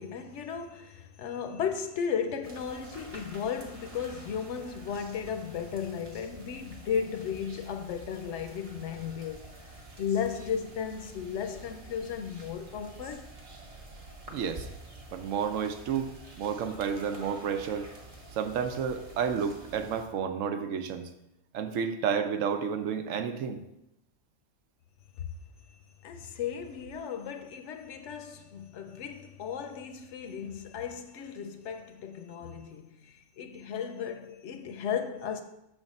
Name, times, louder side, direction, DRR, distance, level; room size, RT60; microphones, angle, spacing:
voice 1, 0.0-9.7 10.0-13.3 25.2-25.3 26.0-35.4, left 7 dB, 70° left, 0.8 m, -35 dB
sound 1, 2.4-20.1, right 2 dB, 35° right, 0.8 m, -48 dB
voice 2, 14.3-14.7 15.1-17.9 18.4-21.1 21.5-23.6, right 7 dB, 80° right, 1.0 m, -31 dB
6.5 x 3.5 x 5.2 m
omnidirectional pair, 1.3 m